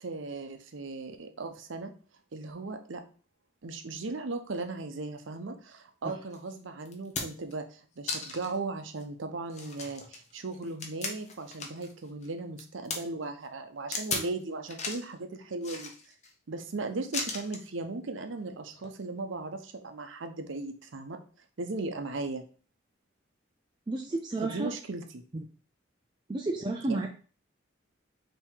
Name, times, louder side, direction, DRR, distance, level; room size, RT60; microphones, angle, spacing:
voice 1, 0.0-1.9 2.3-3.0 3.6-15.9 16.5-21.2 21.6-22.4 24.4-25.2 26.9-27.1, right 3 dB, 80° right, 7 dB, 0.7 m, -37 dB
sound 1, 6.3-6.4 6.9-7.5 8.1-8.6 9.0-9.1 9.5-11.9 12.2-13.0 13.9-14.3 14.7-15.1 15.6-16.3 17.1-17.7 18.7-18.9, left 4 dB, 35° left, 0.7 m, -36 dB
voice 2, 23.9-24.7 25.3-25.5 26.3-27.1, right 2 dB, 25° right, 1 dB, 0.3 m, -31 dB
3.6 x 2.9 x 4.5 m, 0.39 s
head